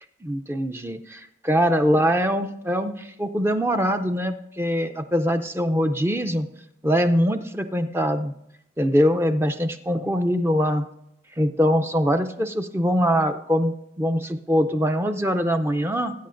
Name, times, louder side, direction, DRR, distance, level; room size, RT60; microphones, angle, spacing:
voice 1, 0.2-6.5 6.8-8.3 8.8-10.9 11.4-16.1, equal, 15° right, 8 dB, 0.5 m, -23 dB
19.0 x 9.3 x 2.5 m, 0.79 s
head